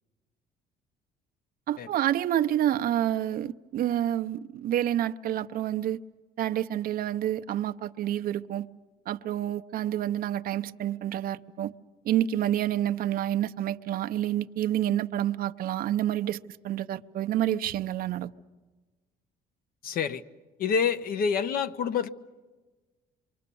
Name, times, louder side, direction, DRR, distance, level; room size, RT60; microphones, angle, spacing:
voice 1, 1.7-6.0 6.4-8.7 9.1-11.7 12.0-18.3, right 12 dB, 60° right, 0.7 m, -28 dB
voice 2, 19.8-20.2 20.6-22.1, left 6 dB, 60° left, 0.9 m, -27 dB
27.5 x 24.0 x 6.9 m
cardioid pair, 110°, 17 cm